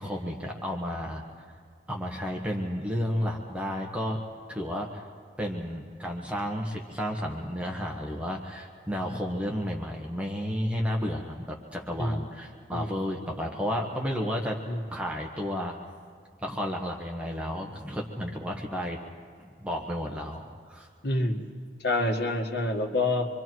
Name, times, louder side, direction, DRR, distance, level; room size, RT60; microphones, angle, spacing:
voice 1, 0.0-1.4 1.9-4.2 4.5-5.0 5.4-14.5 14.9-15.8 16.4-19.0 19.4-20.9, equal, 5° right, 0 dB, 1.4 m, -32 dB
voice 2, 21.0-21.4 21.8-23.3, left 2 dB, 80° left, 2 dB, 2.0 m, -27 dB
26.5 x 24.0 x 4.7 m, 2.2 s
head